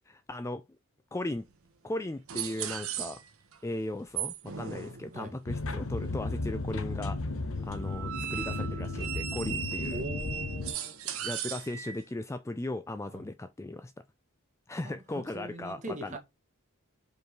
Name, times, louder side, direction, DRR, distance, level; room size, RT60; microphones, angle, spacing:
voice 1, 0.1-0.6 1.1-1.4 1.8-3.2 3.6-7.2 7.6-10.0 11.2-13.9 14.7-16.2, left 1 dB, 15° left, 0.3 m, -37 dB
sound 1, 1.5-1.6 2.3-3.6 4.1-5.5 7.8-12.0, right 9 dB, 75° right, 1.0 m, -37 dB
sound 2, 5.5-10.7, left 2 dB, 65° left, 0.9 m, -34 dB
voice 2, 9.9-11.0 13.1-13.3 14.8-16.2, right 1 dB, 35° right, 1.8 m, -41 dB
5.3 x 4.7 x 5.2 m
head